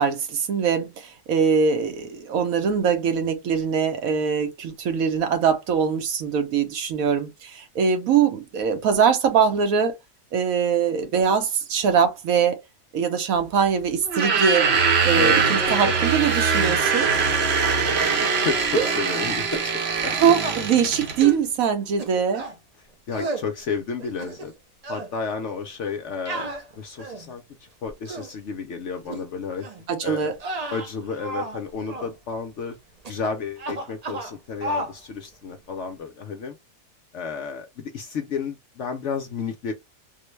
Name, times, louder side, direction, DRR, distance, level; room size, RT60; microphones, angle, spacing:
voice 1, 0.0-10.0 10.3-12.6 12.9-14.7 15.0-17.1 20.2-22.4 29.9-30.3, right 7 dB, 70° right, 1.0 m, -22 dB
sound 1, 14.1-21.3, right 5 dB, 50° right, 0.9 m, -22 dB
voice 2, 18.0-20.1 23.1-24.5 24.9-26.5 26.8-27.4 27.8-29.7 30.0-30.3 30.7-32.8 33.1-36.6 37.1-39.7, left 5 dB, 65° left, 0.8 m, -32 dB
sound 2, 18.7-19.1 19.5-19.7 20.0-20.6 21.2-21.4 22.0-22.6 23.1-23.5 24.0-24.6 24.8-25.1 26.3-27.3 27.9-28.3 29.1-29.2 29.6-29.8 30.3-31.6 31.9-32.1 33.0-33.3 33.6-34.3 34.6-34.9, right 2 dB, 85° right, 0.3 m, -31 dB
3.7 x 2.1 x 3.2 m
omnidirectional pair, 1.7 m